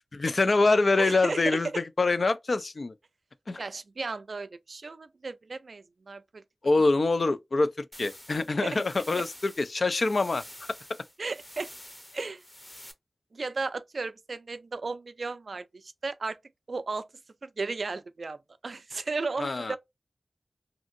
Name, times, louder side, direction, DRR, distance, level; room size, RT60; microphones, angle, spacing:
voice 1, 0.1-2.9 3.5-3.6 6.6-10.4 19.4-19.8, left 3 dB, 70° left, 0.3 m, -25 dB
voice 2, 1.0-1.6 3.6-6.4 8.6-8.8 9.1-9.2 11.2-11.7 12.1-12.4 13.3-16.4 16.7-17.1 17.4-19.8, right 3 dB, 85° right, 0.3 m, -35 dB
sound 1, 7.9-12.9, left 1 dB, 20° left, 0.6 m, -48 dB
2.7 x 2.5 x 2.5 m
wide cardioid pair, 80°, 0 cm